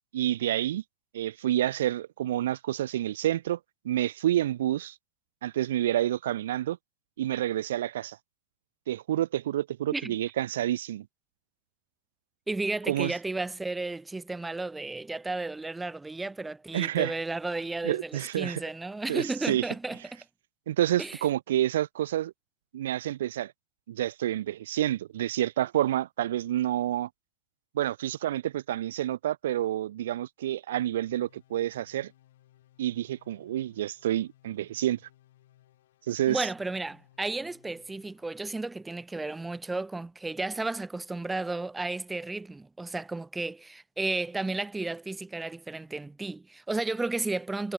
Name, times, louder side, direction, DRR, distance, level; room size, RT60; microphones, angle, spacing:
voice 1, 0.1-0.8 1.1-3.6 3.8-4.9 5.4-6.8 7.2-8.2 8.9-11.1 12.9-13.1 16.7-17.2 17.8-18.6 19.1-19.6 20.7-22.3 22.7-23.5 23.9-27.1 27.7-32.1 32.8-35.0 36.1-36.5, right 12 dB, 90° right, 0.4 m, -28 dB
voice 2, 12.5-20.2 21.0-21.2 36.3-47.7, right 2 dB, 5° right, 0.4 m, -33 dB
sound 1, 31.0-38.3, left 14 dB, 75° left, 2.8 m, -62 dB
supercardioid pair, 160°, 0 cm